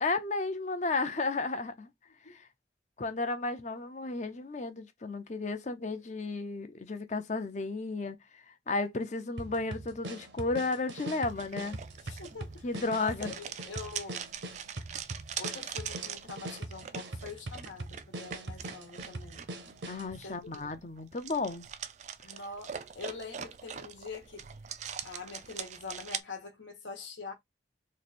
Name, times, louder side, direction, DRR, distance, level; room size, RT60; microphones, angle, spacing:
voice 1, 0.0-1.9 2.3-2.5 3.0-8.2 8.7-11.8 12.6-13.3 19.9-21.7, left 3 dB, 40° left, 0.6 m, -33 dB
sound 1, 9.4-20.1, right 1 dB, 70° right, 0.7 m, -42 dB
sound 2, 11.3-26.2, right 8 dB, 40° right, 0.3 m, -43 dB
voice 2, 12.0-14.3 15.4-19.5 20.2-20.8 22.2-24.5 25.0-27.3, left 4 dB, 80° left, 1.3 m, -44 dB
3.2 x 2.6 x 4.2 m
head